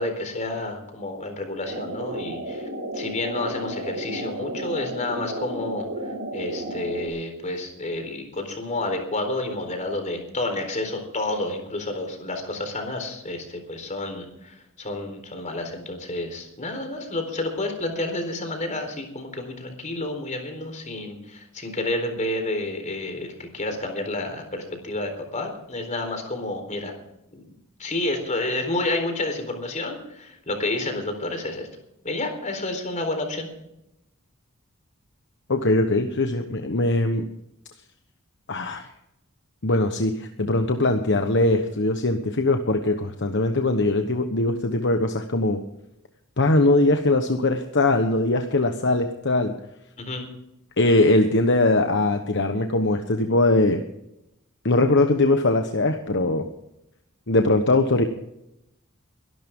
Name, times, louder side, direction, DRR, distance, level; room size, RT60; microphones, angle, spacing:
voice 1, 0.0-2.7 2.9-26.9 27.3-27.5 27.8-31.7 32.0-33.5 50.0-50.3, left 2 dB, 35° left, 5 dB, 4.1 m, -30 dB
sound 1, 1.7-7.1, right 1 dB, 70° right, 5.2 m, -32 dB
voice 2, 35.5-37.3 38.5-38.9 39.6-45.6 46.4-49.5 50.8-53.8 54.6-56.5 57.3-58.0, left 2 dB, 55° left, 6 dB, 1.2 m, -21 dB
23.0 x 12.0 x 3.8 m, 0.84 s
head